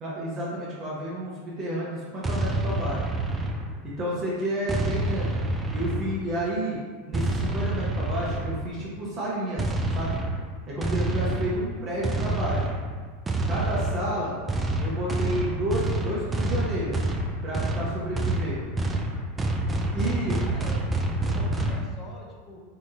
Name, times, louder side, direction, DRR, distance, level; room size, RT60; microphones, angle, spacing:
voice 1, 0.0-3.1 3.8-5.4 5.7-6.8 7.1-10.2 10.7-12.7 13.5-14.4 14.8-17.0 17.4-18.6 19.9-20.4, right 1 dB, 35° right, -6 dB, 0.9 m, -31 dB
sound 1, 2.2-4.0 4.7-6.4 7.1-8.8 9.6-21.8, right 2 dB, 15° right, 0.3 m, -28 dB
voice 2, 4.6-5.2 13.9-14.4 20.3-22.6, left 2 dB, 35° left, -1 dB, 0.6 m, -44 dB
2.9 x 2.6 x 3.6 m, 1.5 s
hypercardioid pair, 110°, 0 cm